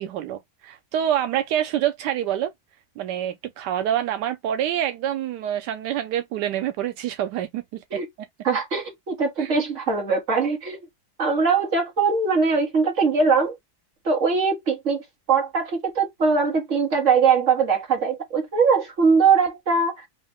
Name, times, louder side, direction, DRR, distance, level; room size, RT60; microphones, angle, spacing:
voice 1, 0.0-2.5 3.0-8.0 9.4-9.5, right 11 dB, 85° right, 1.2 m, -26 dB
voice 2, 8.4-10.8 11.2-13.5 14.0-20.1, right 5 dB, 45° right, 2.0 m, -21 dB
4.1 x 2.7 x 3.5 m
omnidirectional pair, 1.8 m